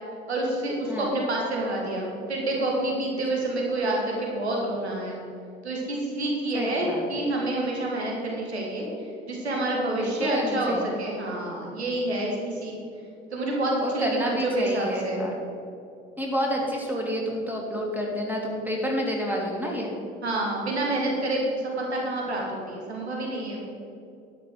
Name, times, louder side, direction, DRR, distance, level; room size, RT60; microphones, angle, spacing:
voice 1, 0.3-5.2 5.6-12.7 13.3-15.2 20.2-23.6, right 1 dB, 90° right, -2 dB, 1.9 m, -28 dB
voice 2, 6.5-7.2 10.0-10.9 13.8-15.5 16.2-19.9, equal, 5° right, -2 dB, 3.0 m, -29 dB
11.0 x 5.8 x 7.7 m, 2.5 s
hypercardioid pair, 60°, 32 cm